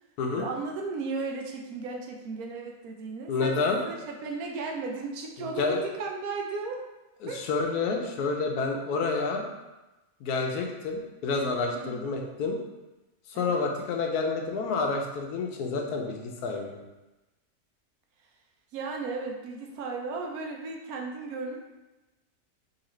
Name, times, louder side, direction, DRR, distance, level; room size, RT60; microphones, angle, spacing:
voice 1, 0.3-3.6 3.8-6.8 7.3-7.4 11.7-12.1 13.3-13.7 18.7-21.6, right 4 dB, 75° right, 1 dB, 1.1 m, -35 dB
voice 2, 3.3-3.8 5.4-5.8 7.2-9.4 10.2-12.6 13.3-16.8, left 4 dB, 85° left, 2 dB, 1.1 m, -29 dB
3.8 x 2.9 x 3.1 m, 1.1 s
omnidirectional pair, 1.6 m